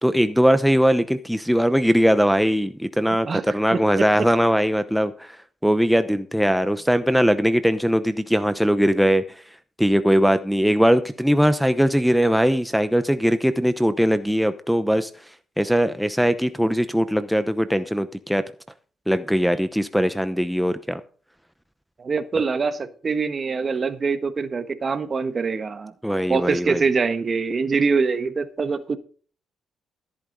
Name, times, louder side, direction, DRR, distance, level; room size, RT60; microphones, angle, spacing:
voice 1, 0.0-9.4 9.8-18.4 19.1-21.0 22.4-22.5 26.0-26.8, equal, ahead, 10 dB, 0.8 m, -20 dB
voice 2, 3.1-3.4 3.7-4.1 22.0-25.9 26.3-29.0, right 4 dB, 40° right, 11 dB, 1.3 m, -24 dB
14.0 x 8.7 x 4.0 m, 0.42 s
cardioid pair, 90°, 0 cm